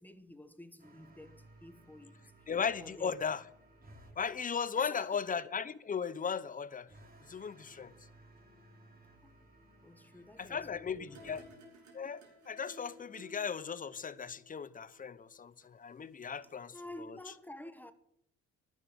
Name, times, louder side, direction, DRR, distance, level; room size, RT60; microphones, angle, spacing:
voice 1, 0.0-2.2 2.8-3.3 4.8-5.2 9.2-9.4 9.8-11.6 16.7-17.9, left 1 dB, 5° left, 1.3 m, -51 dB
sound 1, 0.8-4.2 6.9-11.5, right 1 dB, 30° right, 3.5 m, -59 dB
voice 2, 2.5-3.4 4.2-6.9 7.3-7.9 10.4-11.4 11.9-17.2, left 6 dB, 25° left, 0.9 m, -37 dB
sound 2, 11.1-16.2 16.4-16.5, equal, 70° right, 5.3 m, -58 dB
11.5 x 9.8 x 7.9 m
cardioid pair, 105°, 30 cm